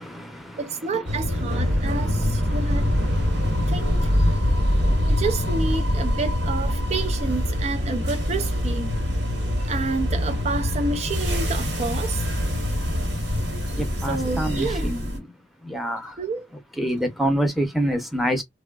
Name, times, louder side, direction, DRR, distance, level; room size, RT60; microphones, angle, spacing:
voice 1, 0.0-0.6 0.9-1.1 1.7-5.2 13.8-15.3 15.6-16.2 16.8-18.4, equal, ahead, 0.7 m, -29 dB
voice 2, 0.6-2.9 3.7-4.4 5.0-8.9 9.6-12.3 13.7-14.9 16.2-16.5, right 4 dB, 40° right, 0.4 m, -29 dB
sound 1, 1.1-15.2, left 1 dB, 85° right, 1.3 m, -24 dB
3.3 x 2.3 x 2.3 m
head